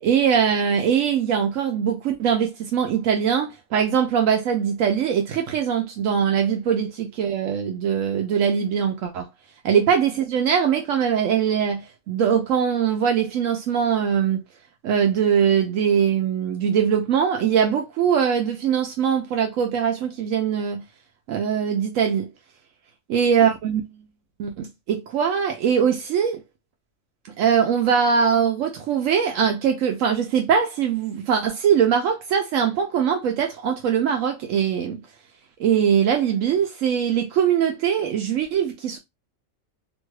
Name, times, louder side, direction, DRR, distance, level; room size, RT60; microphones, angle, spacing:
voice 1, 0.0-9.3 9.6-14.4 14.8-20.8 21.3-22.3 23.1-24.0 24.4-26.4 27.4-35.0 35.6-39.0, right 7 dB, 75° right, 0.9 m, -22 dB
2.9 x 2.3 x 3.1 m
omnidirectional pair, 1.4 m